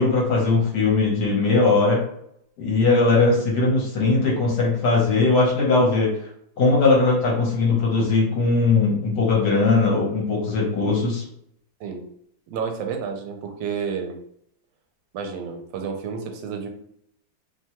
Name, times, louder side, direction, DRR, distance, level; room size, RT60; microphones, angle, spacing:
voice 1, 0.0-2.0 2.6-6.1 6.6-11.2, left 3 dB, 65° left, -3 dB, 1.4 m, -19 dB
voice 2, 12.5-14.2 15.1-16.7, right 6 dB, 80° right, 4 dB, 1.3 m, -30 dB
3.2 x 2.2 x 2.8 m, 0.71 s
omnidirectional pair, 2.0 m